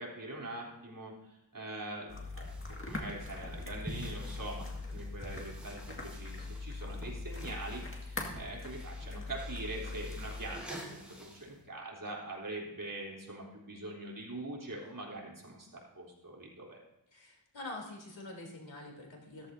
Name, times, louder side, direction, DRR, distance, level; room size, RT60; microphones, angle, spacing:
voice 1, 0.0-2.5 2.8-11.0 11.3-16.8, right 2 dB, 45° right, -3 dB, 3.7 m, -43 dB
sound 1, 2.1-10.6, left 3 dB, 30° left, 2.0 m, -42 dB
sound 2, 2.3-11.6, equal, 5° right, 4.0 m, -49 dB
voice 2, 17.1-19.5, left 2 dB, 75° left, 0 dB, 3.5 m, -45 dB
15.0 x 14.5 x 2.8 m, 0.87 s
wide cardioid pair, 105°, 45 cm